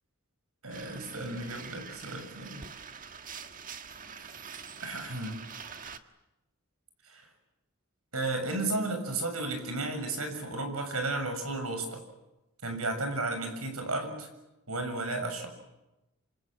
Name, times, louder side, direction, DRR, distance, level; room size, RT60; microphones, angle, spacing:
voice 1, 0.6-2.6 4.2-4.4 4.8-5.4 7.1-7.3 8.1-12.0 12.6-14.3 14.7-15.5, right 2 dB, 80° right, 6 dB, 6.9 m, -33 dB
sound 1, 0.7-6.0, right 6 dB, 40° right, 1.5 m, -45 dB
27.5 x 27.0 x 7.6 m, 0.97 s
head